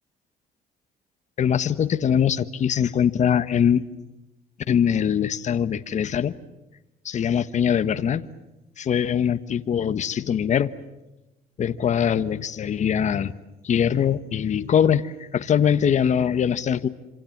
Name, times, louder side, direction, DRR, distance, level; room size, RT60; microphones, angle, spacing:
voice 1, 1.4-3.8 4.7-6.3 7.0-8.3 8.8-10.7 11.6-13.3 13.6-16.9, left 8 dB, 45° left, 13 dB, 1.3 m, -22 dB
27.5 x 26.0 x 7.4 m, 1.0 s
cardioid pair, 110°, 17 cm